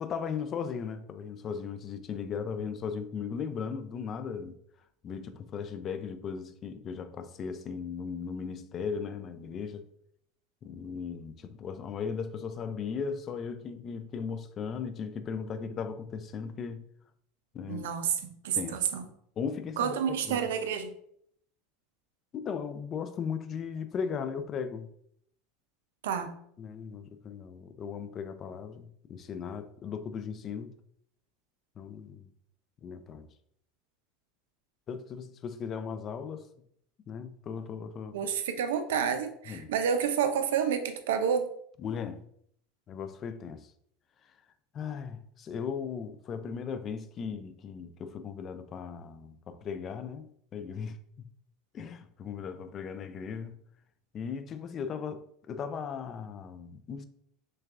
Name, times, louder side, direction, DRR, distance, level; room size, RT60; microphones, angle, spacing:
voice 1, 0.0-4.5 5.0-9.9 10.6-16.8 17.5-17.9 18.5-18.9 19.4-20.5 22.3-24.9 26.6-30.7 31.8-32.3 32.8-33.3 34.9-36.5 37.1-38.2 39.5-39.7 41.8-42.2 42.9-43.7 44.7-51.0 51.7-53.6 54.1-57.1, left 6 dB, 35° left, 0.4 m, -37 dB
voice 2, 17.7-19.1 19.8-20.9 26.0-26.3 38.1-41.5, right 7 dB, 90° right, 0.5 m, -29 dB
6.2 x 2.3 x 2.4 m
supercardioid pair, 130°, 0 cm